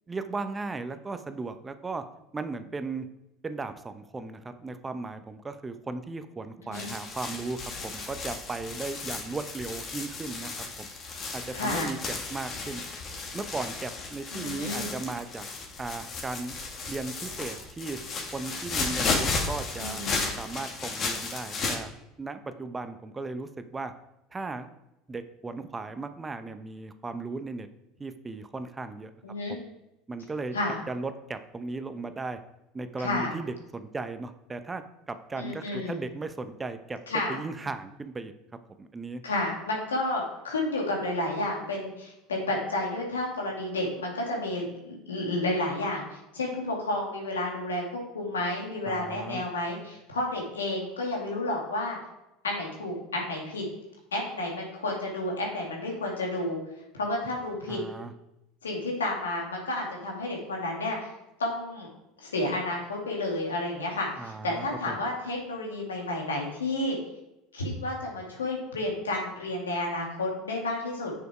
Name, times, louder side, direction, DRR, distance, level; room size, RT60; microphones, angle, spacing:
voice 1, 0.1-2.0 2.3-3.1 3.4-10.5 10.8-10.9 11.3-12.8 13.3-15.5 15.8-16.6 16.9-18.0 18.3-20.0 20.4-23.9 24.3-24.7 25.1-27.7 28.0-29.1 29.5-29.6 30.1-30.5 30.9-32.4 32.7-37.0 37.3-38.3 38.8-39.2 48.9-49.4 57.7-58.1 64.2-65.0, right 3 dB, 20° right, 9 dB, 0.8 m, -36 dB
sound 1, 6.7-21.8, left 3 dB, 40° left, 1.9 m, -34 dB
voice 2, 11.5-11.9 14.3-14.9 19.8-20.2 29.2-29.5 30.5-30.8 33.0-33.3 35.3-35.9 37.1-37.4 39.2-46.0 46.3-47.8 48.1-52.0 52.4-53.7 54.1-56.6 56.9-57.8 58.6-61.0 61.4-61.9 62.2-67.0 67.5-71.1, left 2 dB, 90° left, -1 dB, 2.3 m, -31 dB
6.6 x 6.6 x 4.9 m, 0.90 s
hypercardioid pair, 75°, 0 cm